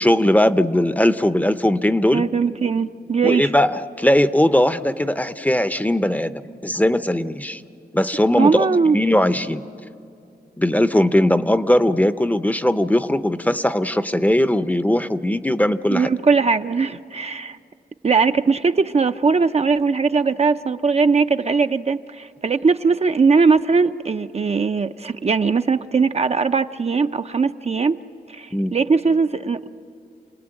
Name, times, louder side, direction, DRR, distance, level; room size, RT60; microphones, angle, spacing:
voice 1, 0.0-2.3 3.2-7.6 7.9-9.6 10.6-16.1 28.5-28.7, left 1 dB, 10° left, 13 dB, 0.6 m, -19 dB
voice 2, 2.1-3.5 8.4-9.0 15.9-17.6 18.0-28.0 28.3-29.7, right 4 dB, 40° right, 8 dB, 0.5 m, -19 dB
28.5 x 19.0 x 8.9 m, 2.5 s
wide cardioid pair, 85°, 17 cm